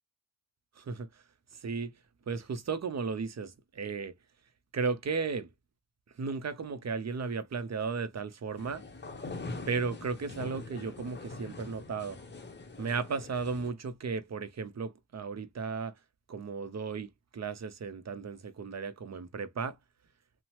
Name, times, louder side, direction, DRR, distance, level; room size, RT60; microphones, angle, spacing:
voice 1, 0.8-1.2 1.5-1.9 2.3-4.1 4.7-5.5 6.2-8.8 9.7-12.2 12.8-15.9 16.3-19.8, right 5 dB, 35° right, 0.6 m, -35 dB
sound 1, 8.6-13.7, left 3 dB, 25° left, 0.8 m, -43 dB
2.7 x 2.1 x 2.9 m
cardioid pair, 45°, 45 cm